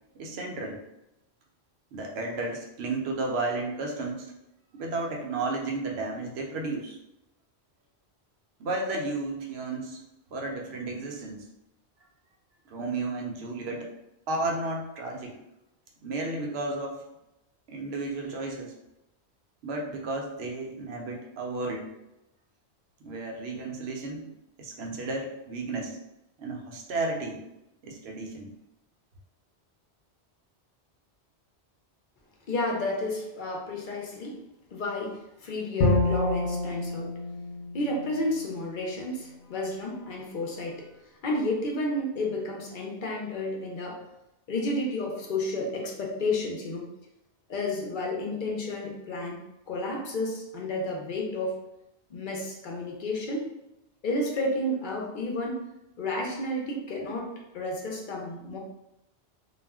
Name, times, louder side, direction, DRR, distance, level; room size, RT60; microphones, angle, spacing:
voice 1, 0.1-0.8 1.9-4.3 4.7-7.0 8.6-10.0 10.3-11.4 12.7-13.9 14.3-15.4 16.0-17.0 17.7-18.8 19.6-21.9 23.0-24.3 24.6-26.0 26.4-27.4 27.8-28.5, right 2 dB, 70° right, 0 dB, 0.8 m, -33 dB
voice 2, 32.5-34.4 34.7-37.2 37.7-40.9 41.2-44.1 44.5-46.9 47.5-51.7 52.1-53.5 54.0-55.6 56.0-58.6, left 1 dB, 55° left, -1 dB, 0.6 m, -31 dB
Bowed string instrument, 35.8-38.9, left 2 dB, 85° left, 0.9 m, -28 dB
2.4 x 2.1 x 3.4 m, 0.88 s
omnidirectional pair, 1.1 m